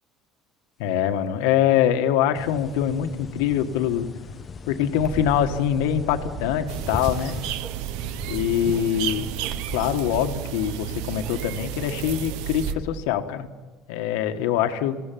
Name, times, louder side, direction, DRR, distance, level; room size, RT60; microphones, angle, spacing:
voice 1, 0.8-4.1 4.7-7.4 8.3-9.3 9.7-13.5 13.9-15.0, left 10 dB, 85° left, 7 dB, 1.7 m, -24 dB
sound 1, 2.3-7.5, left 5 dB, 25° left, 1.0 m, -38 dB
Bark, 5.0-13.0, right 5 dB, 35° right, 1.4 m, -38 dB
sound 2, 6.7-12.7, right 12 dB, 80° right, 0.9 m, -32 dB
22.0 x 16.5 x 9.3 m, 1.3 s
cardioid pair, 130°, 0 cm